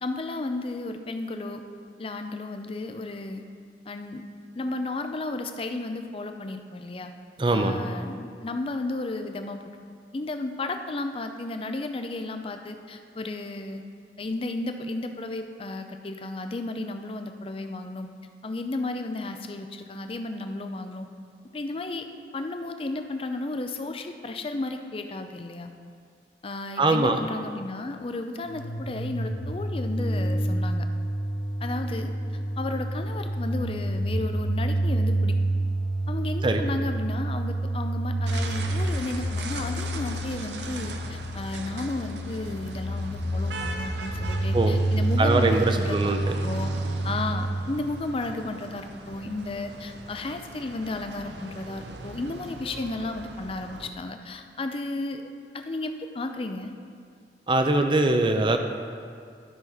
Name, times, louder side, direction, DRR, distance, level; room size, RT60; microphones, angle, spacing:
voice 1, 0.0-1.6 2.0-3.4 3.9-4.2 4.5-7.1 7.5-9.8 10.1-13.8 14.2-18.1 18.4-21.1 21.5-22.1 22.3-25.7 26.4-30.9 31.6-32.1 32.6-35.4 36.1-46.1 46.4-46.7 47.0-55.3 55.5-56.8, left 2 dB, 30° left, 7 dB, 0.5 m, -33 dB
voice 2, 7.4-7.7 26.8-27.2 36.4-36.6 44.5-44.8 45.2-46.2 57.5-58.6, right 2 dB, 25° right, 6 dB, 0.5 m, -22 dB
sound 1, 28.4-47.6, right 1 dB, 50° left, 1.2 m, -28 dB
sound 2, 38.3-53.9, right 3 dB, 75° right, 0.7 m, -40 dB
12.5 x 5.8 x 4.0 m, 2.2 s
head